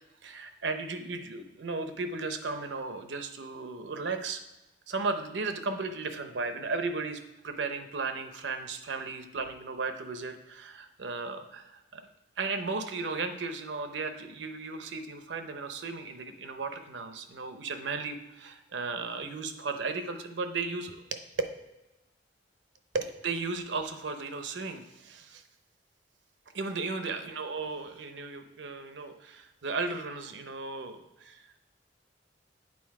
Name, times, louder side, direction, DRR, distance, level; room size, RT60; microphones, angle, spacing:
voice 1, 0.2-4.4 4.9-12.1 12.4-21.2 22.9-25.4 26.5-31.6, right 4 dB, 75° right, 7 dB, 0.7 m, -35 dB
8.6 x 3.9 x 4.7 m, 0.99 s
head